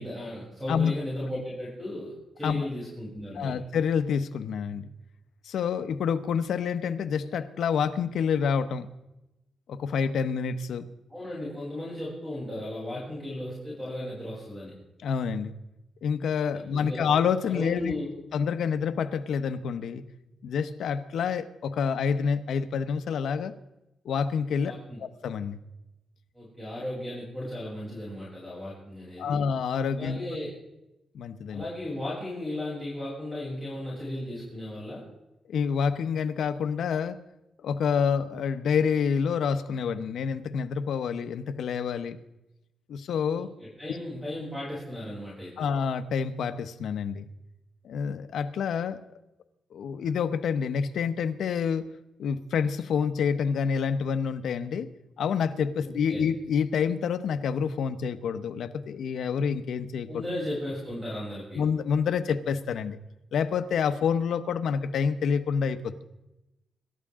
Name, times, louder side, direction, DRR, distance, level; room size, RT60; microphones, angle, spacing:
voice 1, 0.0-3.6 11.1-14.8 16.5-17.1 17.4-18.1 24.6-25.0 26.3-29.4 30.0-30.5 31.5-35.0 43.3-45.7 55.8-56.2 60.1-61.6, left 1 dB, 10° right, -6 dB, 7.3 m, -36 dB
voice 2, 3.4-4.9 5.4-8.9 9.7-10.9 15.0-15.5 16.0-18.0 18.3-20.0 20.4-23.5 24.0-24.7 25.0-25.6 29.2-30.2 31.1-31.6 35.5-37.2 37.6-42.2 42.9-43.5 43.9-44.0 45.6-47.3 47.8-49.0 49.7-51.9 52.2-54.9 55.2-60.2 61.6-63.0 63.3-66.0, left 6 dB, 80° left, 9 dB, 1.0 m, -28 dB
26.5 x 13.0 x 3.7 m, 0.94 s
cardioid pair, 110°, 0 cm